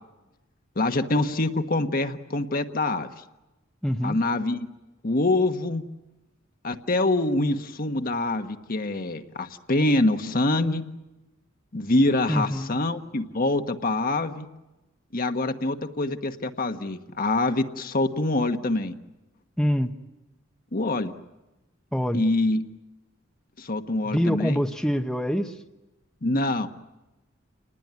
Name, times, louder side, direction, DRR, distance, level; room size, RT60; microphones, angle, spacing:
voice 1, 0.7-3.1 4.0-4.7 5.0-5.8 6.6-10.9 11.7-14.5 15.1-18.9 20.7-21.1 22.1-22.6 23.6-24.6 26.2-26.7, left 2 dB, 45° left, 7 dB, 1.3 m, -25 dB
voice 2, 3.8-4.2 12.3-12.7 19.6-19.9 21.9-22.2 24.0-25.6, equal, 5° left, 5 dB, 0.9 m, -25 dB
29.5 x 20.0 x 9.6 m, 1.0 s
head